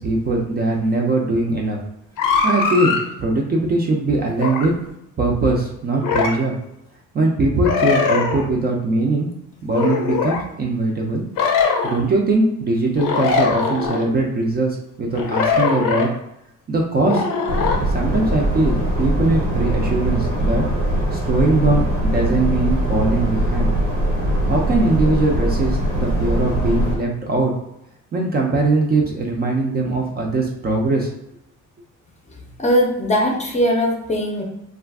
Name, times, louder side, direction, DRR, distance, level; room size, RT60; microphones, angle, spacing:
voice 1, 0.0-1.8 2.4-4.7 5.2-6.5 7.1-9.3 9.6-11.2 11.8-16.1 16.7-17.3 17.8-20.7 21.1-23.7 24.5-27.5 28.1-31.1, right 2 dB, 30° right, 0 dB, 0.4 m, -21 dB
sound 1, 2.2-3.0 4.4-4.7 6.0-6.4 7.6-8.5 9.7-10.4 11.4-12.0 13.0-14.0 15.2-16.1 17.1-17.8, left 5 dB, 90° left, 0.6 m, -20 dB
sound 2, 17.5-27.0, right 1 dB, 85° right, 1.0 m, -21 dB
voice 2, 32.6-34.4, equal, 20° left, 0 dB, 0.6 m, -19 dB
2.4 x 2.4 x 3.4 m, 0.80 s
cardioid pair, 140°, 32 cm